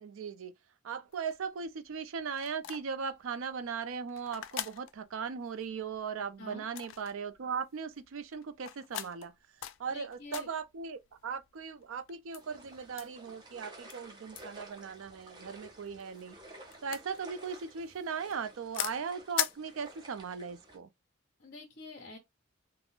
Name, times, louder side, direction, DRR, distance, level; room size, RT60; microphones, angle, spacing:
voice 1, 0.0-0.5 0.8-9.3 9.8-16.4 16.8-20.9, right 6 dB, 80° right, 0.4 m, -38 dB
sound 1, 1.1-20.4, left 12 dB, 75° left, 0.3 m, -43 dB
voice 2, 9.9-10.5 21.4-22.2, left 3 dB, 50° left, 0.7 m, -47 dB
sound 2, 12.4-20.8, right 2 dB, 20° right, 0.6 m, -53 dB
3.6 x 2.0 x 2.4 m
head